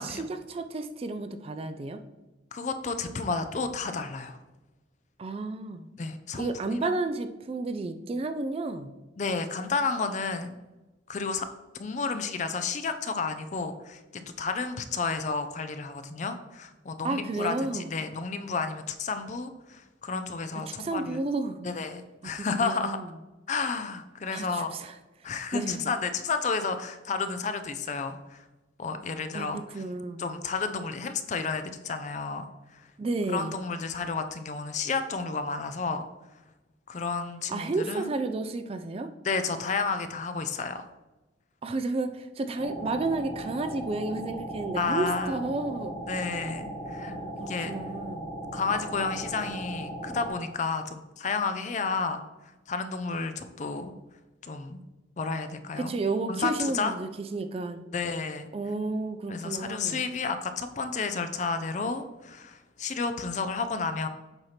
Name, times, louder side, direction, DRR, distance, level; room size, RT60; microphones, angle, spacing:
voice 1, 0.0-2.0 5.2-5.9 6.4-8.9 17.0-17.9 20.7-21.7 22.2-23.1 24.3-25.9 29.3-30.2 33.0-33.6 37.5-39.1 41.6-45.9 47.1-48.3 55.8-57.8 58.5-60.0, right 3 dB, 30° right, 9 dB, 0.3 m, -32 dB
voice 2, 2.5-4.4 6.0-6.9 9.2-10.6 11.1-11.5 11.8-21.2 21.6-23.0 23.5-24.7 25.2-28.4 28.8-29.6 30.2-32.9 33.3-36.1 36.9-38.1 39.2-40.9 44.7-45.4 46.1-47.2 47.5-47.8 48.5-52.2 52.7-53.9 54.4-54.8 55.2-55.9 56.3-56.9 57.9-58.5 59.3-64.1, left 4 dB, 40° left, 9 dB, 0.4 m, -31 dB
sound 1, 42.6-50.3, right 1 dB, 50° right, 1.3 m, -37 dB
7.9 x 2.9 x 5.7 m, 1.1 s
head